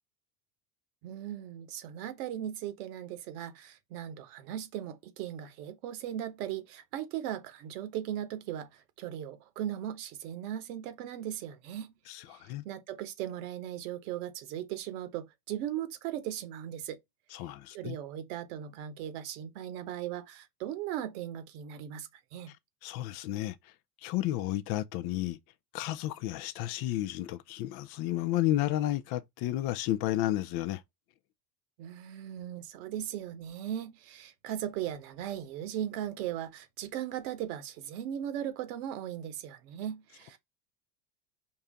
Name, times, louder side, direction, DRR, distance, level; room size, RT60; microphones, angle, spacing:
voice 1, 1.0-11.9 12.3-17.0 17.7-22.5 31.8-40.4, right 11 dB, 70° right, 1.3 m, -38 dB
voice 2, 12.1-12.6 17.3-18.0 22.8-23.6 24.0-25.4 25.7-30.8, left 14 dB, 50° left, 0.6 m, -32 dB
4.7 x 2.8 x 3.5 m
hypercardioid pair, 90°, 47 cm